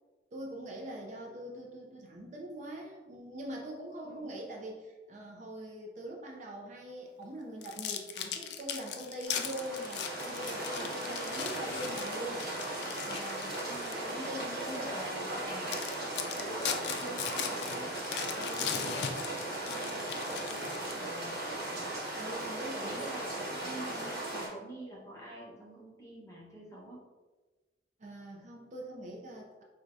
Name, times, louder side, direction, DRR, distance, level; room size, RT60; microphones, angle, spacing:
voice 1, 0.3-12.4 13.0-13.6 14.1-15.0 18.4-18.9 22.2-23.2 23.9-24.1 28.0-29.6, right 1 dB, 40° right, -1 dB, 0.4 m, -43 dB
voice 2, 4.0-4.4 13.6-15.8 16.4-17.9 18.2-21.6 22.8-24.0 24.3-27.0, right 1 dB, 15° left, -6 dB, 0.9 m, -46 dB
sound 1, 7.6-14.1 14.6-14.8 15.3-15.4 15.7-21.2, left 8 dB, 65° left, 0.3 m, -39 dB
sound 2, 9.2-24.5, right 1 dB, 55° right, 1.0 m, -37 dB
4.5 x 2.2 x 2.6 m, 1.2 s
head